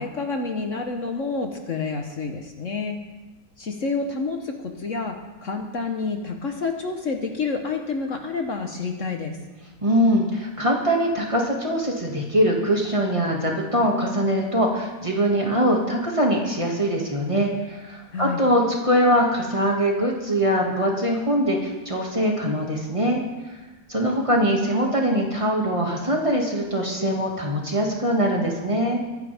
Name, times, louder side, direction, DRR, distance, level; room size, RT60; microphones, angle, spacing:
voice 1, 0.0-3.0 3.6-5.2 5.4-9.4 18.1-18.4, left 4 dB, 55° left, 3 dB, 1.5 m, -28 dB
voice 2, 9.8-23.2 23.9-29.0, equal, 20° right, -1 dB, 2.2 m, -22 dB
23.5 x 10.0 x 3.6 m, 1.1 s
omnidirectional pair, 1.6 m